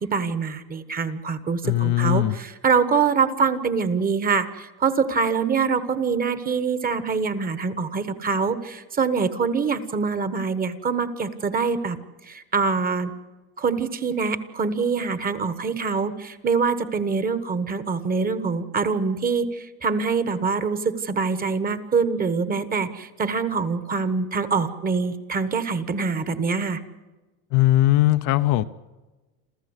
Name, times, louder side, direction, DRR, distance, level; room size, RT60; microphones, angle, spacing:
voice 1, 0.0-12.0 12.3-13.1 13.6-26.8, right 5 dB, 20° right, 1.2 m, -24 dB
voice 2, 1.6-2.3 27.5-28.6, left 15 dB, 45° left, 0.7 m, -19 dB
28.0 x 14.5 x 8.0 m
supercardioid pair, 150°, 43 cm